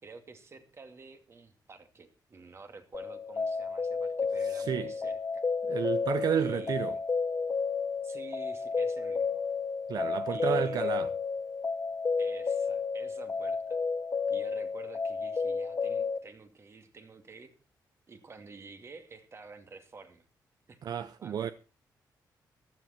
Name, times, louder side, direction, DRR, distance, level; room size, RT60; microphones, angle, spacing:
voice 1, 0.0-5.8 6.4-7.0 8.0-9.5 10.3-11.1 12.2-13.8 14.3-17.5 18.1-20.2 20.7-20.8 21.2-21.5, right 4 dB, 35° right, 2.4 m, -50 dB
sound 1, 2.9-16.2, left 5 dB, 30° left, 0.8 m, -32 dB
voice 2, 4.5-4.9 5.7-7.0 9.9-11.1 20.8-21.5, right 8 dB, 60° right, 0.6 m, -31 dB
15.0 x 12.5 x 4.4 m
cardioid pair, 125°, 7 cm